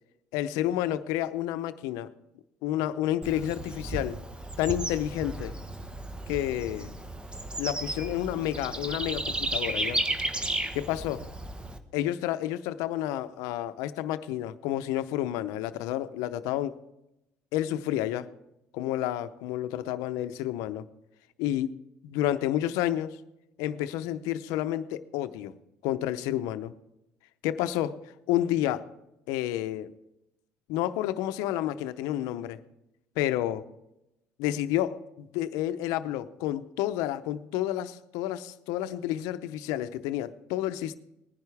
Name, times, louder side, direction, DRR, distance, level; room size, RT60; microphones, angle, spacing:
voice 1, 0.3-2.1 2.6-4.2 4.6-5.5 6.3-6.9 7.6-10.0 10.7-11.2 11.9-16.7 17.5-18.3 18.7-20.8 21.4-21.7 22.0-23.2 23.6-25.6 25.8-26.7 27.4-28.0 28.3-28.9 29.3-29.9 30.7-32.6 33.2-33.7 34.4-41.0, left 13 dB, 80° left, 12 dB, 0.7 m, -30 dB
Bird / Insect, 3.2-11.8, right 1 dB, 15° right, 1.2 m, -34 dB
19.5 x 10.5 x 3.4 m, 0.87 s
supercardioid pair, 80°, 6 cm